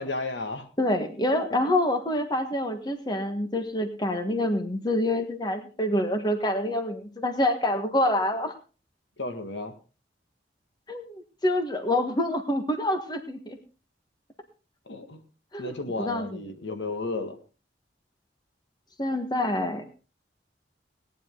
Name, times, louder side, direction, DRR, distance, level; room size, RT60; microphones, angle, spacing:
voice 1, 0.0-0.7 9.2-9.8 14.9-15.2 15.6-17.4, left 2 dB, 80° left, 7 dB, 1.8 m, -33 dB
voice 2, 0.8-8.5 10.9-13.6 15.5-15.7 16.0-16.3 19.0-19.9, left 1 dB, 25° left, 7 dB, 1.5 m, -26 dB
18.0 x 10.0 x 3.8 m, 0.34 s
head